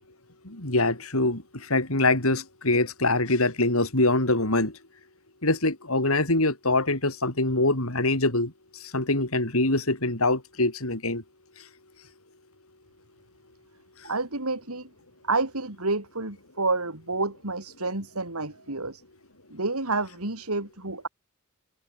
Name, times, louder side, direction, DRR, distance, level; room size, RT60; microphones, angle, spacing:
voice 1, 0.4-4.8 5.4-11.2, left 2 dB, 70° left, 5.4 m, -24 dB
voice 2, 14.0-14.9 15.3-19.0 19.5-21.1, right 3 dB, 80° right, 4.5 m, -29 dB
open air
head